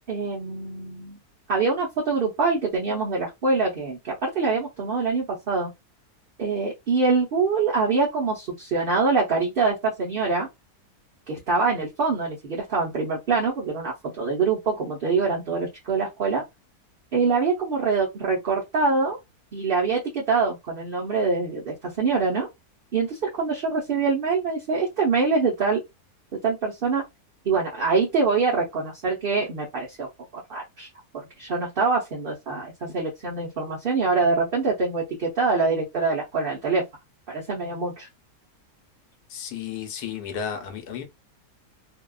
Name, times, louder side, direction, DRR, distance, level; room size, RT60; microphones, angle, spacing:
voice 1, 0.1-1.2 1.5-5.7 6.4-10.5 11.3-16.4 17.1-19.2 19.5-22.5 22.9-25.8 26.4-27.0 27.4-30.1 30.3-30.9 31.1-36.9 37.3-38.1, right 4 dB, 50° right, 0.7 m, -24 dB
voice 2, 39.3-41.0, left 8 dB, 85° left, 1.2 m, -33 dB
2.7 x 2.3 x 2.3 m
omnidirectional pair, 1.6 m